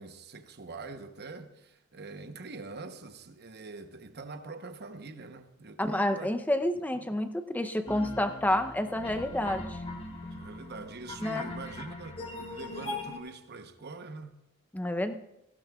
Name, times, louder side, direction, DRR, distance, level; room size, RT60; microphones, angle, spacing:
voice 1, 0.0-6.4 6.9-7.1 10.2-14.4, right 3 dB, 50° right, 0.9 m, -44 dB
voice 2, 5.8-9.8 11.2-11.6 14.7-15.1, left 1 dB, 10° left, 0.6 m, -29 dB
sound 1, 7.9-13.2, left 2 dB, 25° left, 1.7 m, -40 dB
18.0 x 16.0 x 2.4 m
head